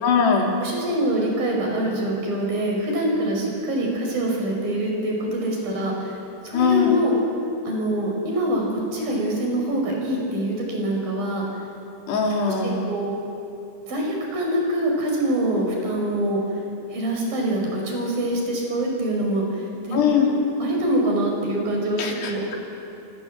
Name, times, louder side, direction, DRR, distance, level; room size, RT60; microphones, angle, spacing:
voice 1, 0.0-0.5 6.5-7.0 12.1-12.8 19.9-20.3 22.0-22.6, left 6 dB, 85° left, 0 dB, 5.3 m, -21 dB
voice 2, 0.6-6.2 6.4-7.1 7.7-11.5 12.4-13.1 13.9-16.4 16.9-20.3 20.6-22.4, right 1 dB, 60° right, 0 dB, 7.2 m, -25 dB
27.0 x 26.0 x 7.8 m, 2.8 s
omnidirectional pair, 4.7 m